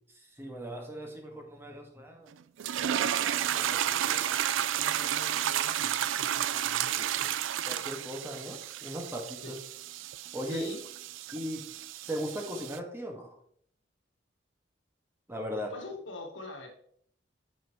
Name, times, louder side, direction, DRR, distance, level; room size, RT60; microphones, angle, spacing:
voice 1, 0.4-2.3 2.8-3.1 3.7-4.1 7.7-9.6 10.3-10.7 11.3-11.6 12.1-13.4 15.3-15.7, equal, 15° right, 1 dB, 1.5 m, -38 dB
sound 1, 2.6-12.8, right 11 dB, 90° right, 0.4 m, -32 dB
voice 2, 2.9-4.3 4.7-7.4 9.4-9.5 10.4-10.8 15.7-16.7, left 2 dB, 80° left, 2 dB, 1.6 m, -45 dB
9.8 x 5.5 x 3.0 m, 0.64 s
head